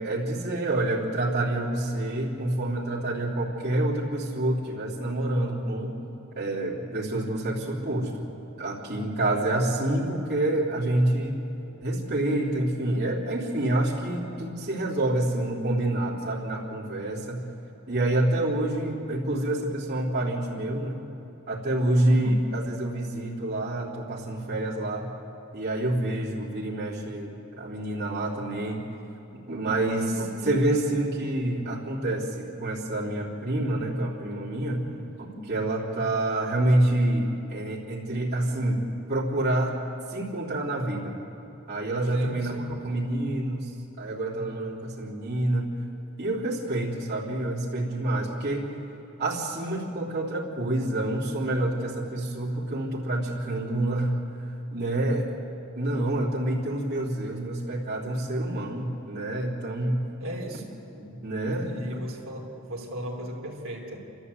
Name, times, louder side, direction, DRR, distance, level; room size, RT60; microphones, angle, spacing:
voice 1, 0.0-6.0 6.3-8.3 8.6-11.4 11.8-17.5 17.9-21.0 21.5-25.1 25.5-28.8 29.3-34.9 35.2-39.8 40.1-41.2 41.7-45.7 46.2-48.7 49.2-54.2 54.7-55.3 55.7-60.0 61.0-62.0, right 1 dB, 50° right, -7 dB, 3.3 m, -27 dB
voice 2, 21.9-22.3 29.8-30.1 34.8-35.1 42.1-42.7 60.2-60.7 61.5-64.1, equal, 70° right, -1 dB, 3.1 m, -37 dB
29.5 x 13.5 x 8.3 m, 3.0 s
head